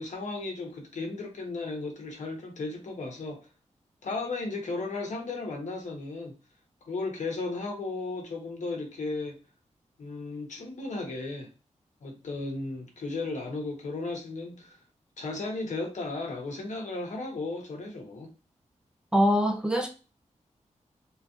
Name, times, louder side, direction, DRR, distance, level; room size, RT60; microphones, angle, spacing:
voice 1, 0.0-3.5 4.0-6.4 6.8-9.4 10.0-11.5 12.0-14.8 15.2-18.3, left 3 dB, 70° left, 1.2 m, -35 dB
voice 2, 19.1-19.9, equal, 5° right, 0.6 m, -23 dB
3.6 x 3.0 x 2.4 m
wide cardioid pair, 155°, 13 cm